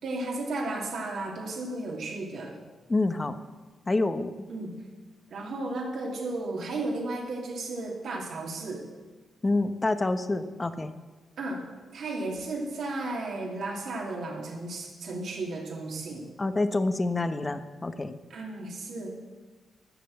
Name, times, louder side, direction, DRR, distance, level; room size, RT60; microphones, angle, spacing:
voice 1, 0.0-2.6 4.5-4.8 5.3-8.9 11.4-11.6 11.9-16.3 18.3-19.1, right 2 dB, 70° right, -1 dB, 2.8 m, -34 dB
voice 2, 2.9-3.3 3.9-4.3 9.4-10.9 16.4-18.2, left 2 dB, 30° left, 10 dB, 1.1 m, -27 dB
13.0 x 6.7 x 7.7 m, 1.3 s
supercardioid pair, 45°, 0 cm